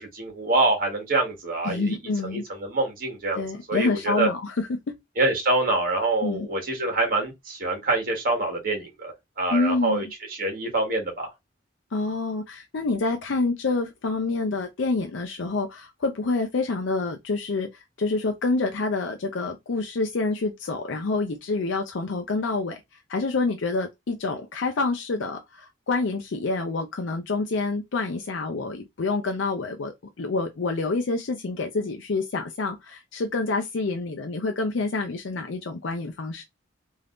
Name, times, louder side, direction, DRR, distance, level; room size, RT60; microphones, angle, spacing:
voice 1, 0.0-4.3 5.2-11.3, right 2 dB, 45° right, 1.4 m, -26 dB
voice 2, 1.6-2.4 3.3-5.0 6.2-6.5 9.5-10.0 11.9-22.8 23.1-36.4, left 3 dB, 70° left, 0.5 m, -27 dB
3.4 x 2.7 x 2.4 m
head